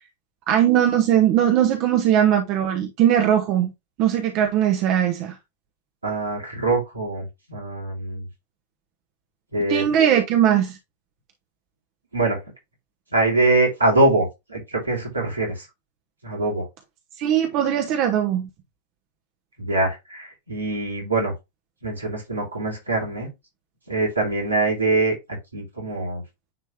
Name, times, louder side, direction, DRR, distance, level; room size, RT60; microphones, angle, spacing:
voice 1, 0.5-3.7 4.0-5.3 9.7-10.8 17.2-18.5, right 10 dB, 40° right, 1.0 m, -19 dB
voice 2, 6.0-8.2 9.5-9.9 12.1-12.4 13.1-15.7 16.2-16.7 19.6-21.3 21.8-23.3 23.9-25.1 25.5-26.2, right 2 dB, 80° right, 2.9 m, -23 dB
9.6 x 3.4 x 2.9 m
figure-of-eight pair, 90°, 0 cm